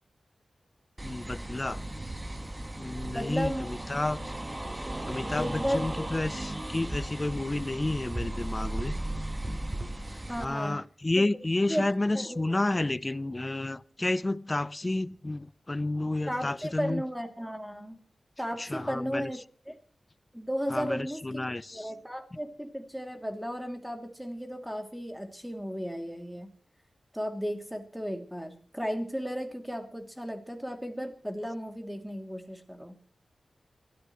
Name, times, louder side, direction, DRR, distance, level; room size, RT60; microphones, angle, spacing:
voice 1, 1.0-1.8 2.8-4.3 5.0-9.0 10.4-17.0 18.6-19.3 20.7-21.9, left 2 dB, 25° left, 0.6 m, -31 dB
sound 1, 1.0-10.4, right 1 dB, 25° right, 1.5 m, -36 dB
voice 2, 3.1-3.7 5.3-6.0 10.1-10.8 11.7-11.8 12.1-12.6 16.3-18.0 18.4-19.7 20.3-21.5 21.7-26.5 27.1-33.0, equal, 5° right, 2.8 m, -35 dB
28.0 x 13.5 x 3.1 m
wide cardioid pair, 70°, 0 cm